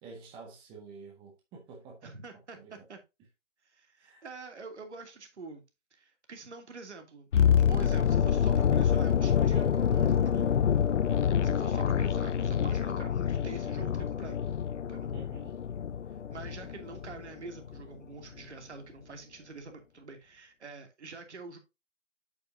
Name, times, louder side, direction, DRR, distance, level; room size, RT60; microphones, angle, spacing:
voice 1, 0.0-2.1 2.5-2.9 4.0-4.2 15.1-15.6, right 4 dB, 15° right, 1.5 m, -49 dB
voice 2, 2.0-3.0 3.7-5.6 5.9-7.3 7.5-10.6 11.2-14.4 14.9-15.1 16.3-21.6, right 4 dB, 65° right, 2.9 m, -46 dB
sound 1, 7.3-17.3 17.6-17.8, left 8 dB, 75° left, 0.6 m, -27 dB
8.6 x 6.9 x 2.7 m
figure-of-eight pair, 150°, 37 cm